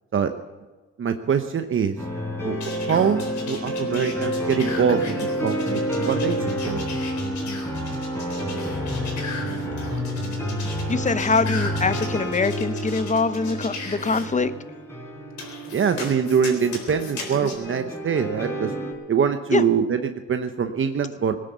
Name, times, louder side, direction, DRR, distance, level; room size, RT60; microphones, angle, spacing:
voice 1, 1.0-1.9 2.4-3.2 3.5-6.4 6.6-6.8 15.7-18.7 19.1-21.4, right 7 dB, 45° right, 7 dB, 0.9 m, -24 dB
sound 1, 2.0-18.9, equal, 10° left, 4.4 m, -29 dB
sound 2, 2.6-14.2 15.4-17.5, left 4 dB, 70° left, 4.1 m, -37 dB
voice 2, 10.9-14.5 19.5-19.6, left 4 dB, 25° left, 14 dB, 0.8 m, -23 dB
19.0 x 10.0 x 7.0 m, 1.3 s
cardioid pair, 90°, 30 cm